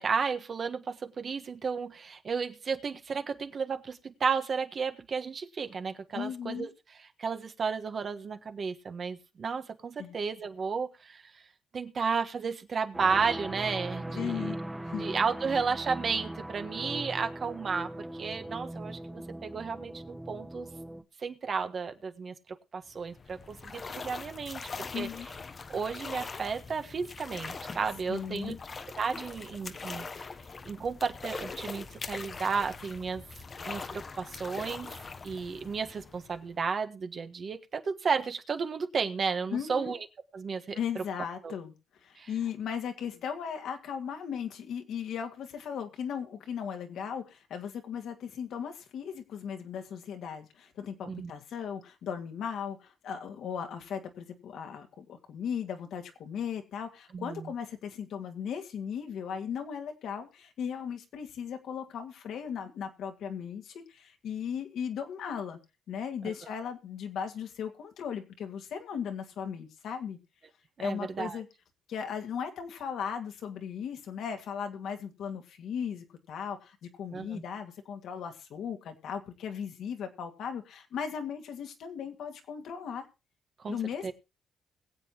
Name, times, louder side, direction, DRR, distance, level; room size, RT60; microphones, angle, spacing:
voice 1, 0.0-6.7 7.2-11.2 11.7-14.5 15.0-20.7 21.2-22.3 22.7-25.1 25.7-28.6 29.0-30.1 30.6-33.2 33.6-34.9 35.2-40.0 40.3-41.0 41.4-41.5 42.2-42.3 51.1-51.3 57.1-57.5 70.8-71.4 77.1-77.4 83.6-83.8 84.0-84.1, right 5 dB, 45° right, 7 dB, 1.4 m, -33 dB
voice 2, 6.1-6.7 10.0-10.2 14.1-14.6 14.8-15.0 24.9-25.3 28.1-28.6 39.5-39.9 40.7-65.6 65.9-70.2 70.8-71.5 71.9-83.1 83.7-84.1, left 7 dB, 75° left, 6 dB, 2.0 m, -37 dB
sound 1, 12.9-21.0, right 1 dB, 10° right, 0.8 m, -39 dB
sound 2, 22.9-36.6, left 4 dB, 35° left, 0.9 m, -42 dB
21.5 x 7.9 x 3.0 m, 0.28 s
cardioid pair, 90°, 0 cm